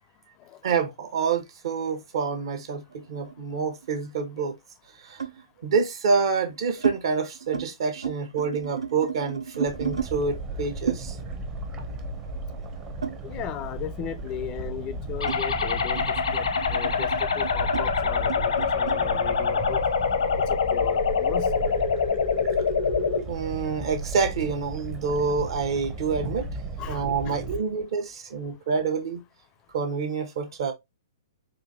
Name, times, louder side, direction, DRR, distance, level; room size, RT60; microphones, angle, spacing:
voice 1, 0.6-4.6 4.9-5.2 5.6-11.2 23.3-26.5 26.9-29.2 29.7-30.7, right 5 dB, 65° right, 1.0 m, -27 dB
sound 1, 2.3-3.9 5.2-5.4 6.2-7.0 7.3-7.7 7.9-10.1 10.9-13.7 14.0-19.0, right 7 dB, 90° right, 0.6 m, -34 dB
sound 2, 9.7-27.6, right 2 dB, 25° right, 0.6 m, -35 dB
voice 2, 13.2-19.8 20.5-21.6 26.8-27.4, left 10 dB, 30° left, 0.4 m, -36 dB
sound 3, 15.2-23.2, left 6 dB, 80° left, 0.7 m, -25 dB
4.2 x 2.5 x 2.6 m
hypercardioid pair, 125°, 3 cm